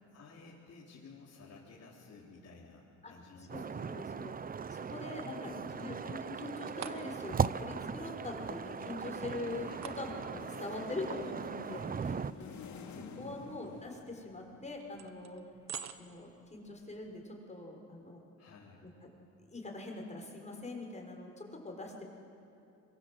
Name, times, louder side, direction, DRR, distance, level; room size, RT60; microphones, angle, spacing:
voice 1, 0.1-3.9 5.4-5.9 9.6-10.0 10.5-11.1 11.7-12.0 12.9-13.4 18.4-18.9, left 3 dB, 55° left, -6 dB, 4.2 m, -53 dB
sound 1, 3.5-12.3, right 6 dB, 30° right, 0.7 m, -38 dB
voice 2, 3.9-4.3 4.7-5.5 5.8-11.9 12.4-12.6 13.2-15.4 16.0-18.2 18.8-18.9 19.5-22.0, left 2 dB, 25° left, 1 dB, 6.1 m, -43 dB
sound 2, 8.0-14.5, left 5 dB, 70° left, 3.0 m, -52 dB
sound 3, 13.0-17.3, right 7 dB, 60° right, 1.5 m, -52 dB
25.5 x 23.5 x 8.0 m, 2.8 s
cardioid pair, 90°, 30 cm